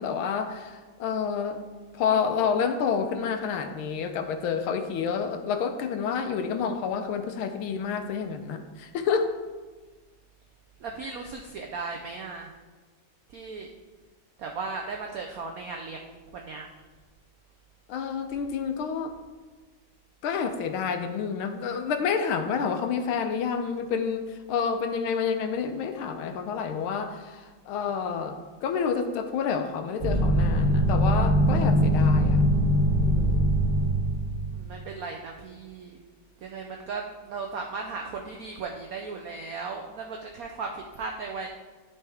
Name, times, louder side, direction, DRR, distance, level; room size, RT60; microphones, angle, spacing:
voice 1, 0.0-1.6 1.9-9.3 17.9-19.1 20.2-32.4 33.0-33.6, left 6 dB, 85° left, 7 dB, 1.6 m, -29 dB
voice 2, 10.8-12.5 13.3-13.7 14.4-16.7 34.5-36.0 36.4-41.5, right 4 dB, 80° right, 2 dB, 0.8 m, -36 dB
sound 1, 30.0-34.5, equal, 20° right, 2.9 m, -22 dB
12.0 x 4.6 x 3.4 m, 1.3 s
omnidirectional pair, 2.3 m